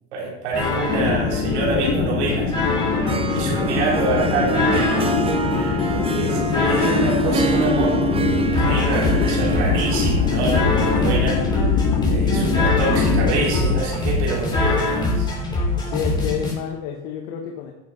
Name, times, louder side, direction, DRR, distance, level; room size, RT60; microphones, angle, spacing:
voice 1, 0.1-2.8 3.3-5.0 5.5-11.8 12.1-15.3, right 3 dB, 90° right, -4 dB, 3.5 m, -26 dB
sound 1, 0.5-16.5, left 2 dB, 15° left, 3.6 m, -24 dB
sound 2, 0.9-13.8, left 7 dB, 40° left, 1.4 m, -24 dB
Harp, 2.8-11.8, right 5 dB, 15° right, 0.7 m, -27 dB
voice 2, 3.3-3.6 6.2-6.9 15.8-17.7, left 8 dB, 75° left, 1 dB, 1.5 m, -30 dB
11.0 x 7.6 x 4.1 m, 0.98 s
supercardioid pair, 130°, 33 cm